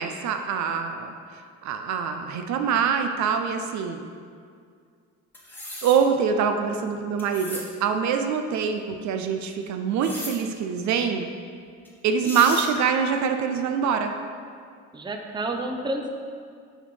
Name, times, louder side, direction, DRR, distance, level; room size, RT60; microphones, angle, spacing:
voice 1, 0.0-4.0 5.8-11.3 12.0-14.1, right 6 dB, 65° right, 6 dB, 0.6 m, -24 dB
sound 1, 5.3-6.0 7.2-7.7 10.0-10.3 11.8-11.9 12.2-12.7, left 1 dB, 5° left, 1.4 m, -36 dB
voice 2, 14.9-16.1, right 1 dB, 15° right, 3 dB, 0.6 m, -30 dB
5.6 x 4.5 x 5.4 m, 2.2 s
cardioid pair, 95°, 31 cm